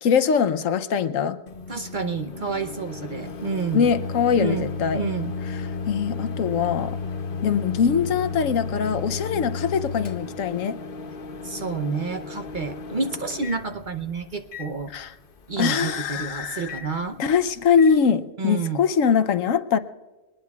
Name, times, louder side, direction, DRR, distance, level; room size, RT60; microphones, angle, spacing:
voice 1, 0.0-1.4 3.7-5.0 5.5-7.0 7.4-10.8 14.9-15.1 15.6-16.7 17.2-19.8, left 7 dB, 75° left, 11 dB, 1.1 m, -22 dB
Microwave oven, 1.5-17.9, left 4 dB, 50° left, 0.9 m, -34 dB
voice 2, 1.7-3.8 4.4-5.3 11.4-14.9 15.5-17.2 18.4-18.8, right 4 dB, 45° right, 7 dB, 0.8 m, -29 dB
22.5 x 20.0 x 2.3 m, 1.2 s
omnidirectional pair, 1.4 m